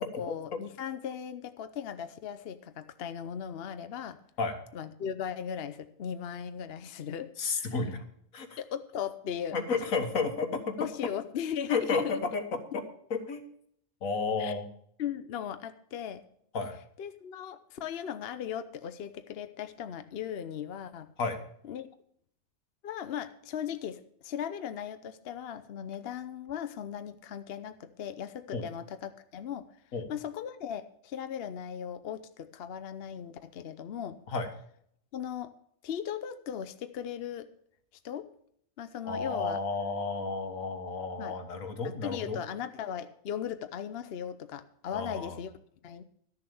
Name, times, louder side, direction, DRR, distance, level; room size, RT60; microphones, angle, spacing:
voice 1, 0.2-4.2 4.7-7.8 8.6-9.6 10.8-12.2 14.4-14.6 15.0-16.2 17.0-21.1 21.6-21.9 22.8-29.6 30.1-34.2 35.1-35.5 35.8-37.5 38.0-38.3 38.8-39.6 41.2-41.3 42.0-45.5 45.8-46.0, left 9 dB, 55° left, 10 dB, 0.8 m, -37 dB
voice 2, 7.4-8.0 8.3-8.6 9.5-10.7 11.7-12.8 13.1-13.4 14.0-14.6 16.5-16.8 21.2-21.4 28.5-28.7 29.9-30.1 34.3-34.5 39.0-42.4 44.9-45.4, left 4 dB, 70° left, 6 dB, 1.8 m, -32 dB
12.5 x 7.0 x 6.9 m, 0.67 s
omnidirectional pair, 1.5 m